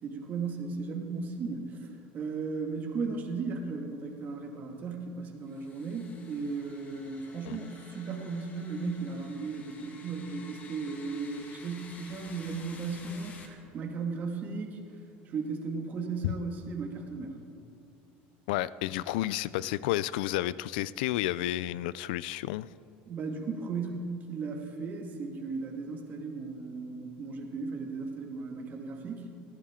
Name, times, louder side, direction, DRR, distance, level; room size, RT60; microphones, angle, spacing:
voice 1, 0.0-14.8 15.3-17.4 23.1-29.3, right 4 dB, 40° right, 1 dB, 2.0 m, -36 dB
sound 1, 5.5-13.5, left 4 dB, 35° left, 2.0 m, -52 dB
voice 2, 18.5-22.7, left 15 dB, 85° left, 18 dB, 0.4 m, -31 dB
18.5 x 15.0 x 3.8 m, 2.6 s
cardioid pair, 135°, 5 cm